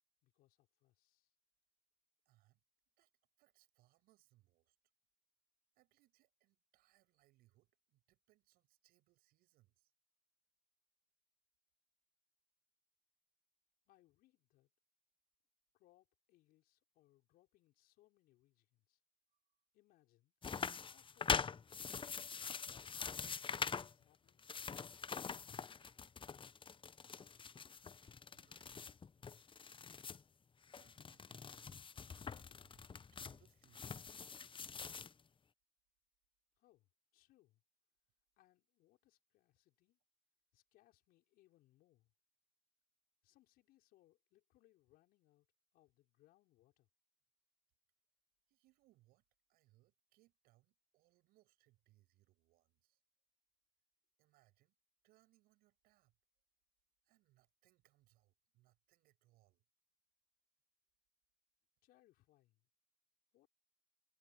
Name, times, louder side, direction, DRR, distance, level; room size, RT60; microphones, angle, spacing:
voice 1, 0.2-1.3 13.9-14.7 15.7-19.0 19.7-20.3 20.9-22.0 22.4-24.5 36.6-37.6 38.4-40.0 40.5-42.1 43.2-45.5 45.7-46.9 61.8-62.7 63.3-63.5, left 16 dB, 70° left, 5.4 m, -73 dB
voice 2, 2.3-2.6 3.0-4.8 5.7-9.9 19.3-19.6 27.0-27.6 27.9-29.4 30.2-30.3 30.6-34.5 48.5-49.2 49.5-53.0 54.2-54.8 55.0-56.1 57.0-59.6, right 17 dB, 70° right, 7.1 m, -75 dB
sound 1, 20.4-23.9 24.3-30.2 30.6-35.1, left 6 dB, 30° left, 0.9 m, -44 dB
hypercardioid pair, 50°, 16 cm